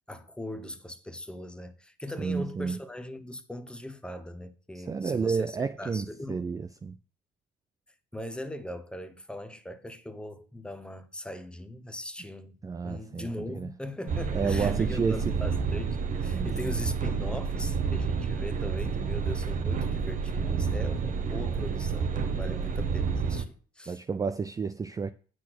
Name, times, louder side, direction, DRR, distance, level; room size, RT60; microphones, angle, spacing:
voice 1, 0.1-6.5 8.1-12.5 12.8-24.0, left 1 dB, 5° left, 1.0 m, -40 dB
voice 2, 2.2-2.8 4.7-7.0 12.6-13.7 14.3-15.2 16.3-16.5 20.4-20.7 22.5-22.7 23.9-25.1, right 5 dB, 20° right, 0.4 m, -31 dB
sound 1, 14.1-23.4, right 5 dB, 50° right, 1.0 m, -29 dB
8.4 x 6.2 x 6.1 m
cardioid pair, 110°, 17 cm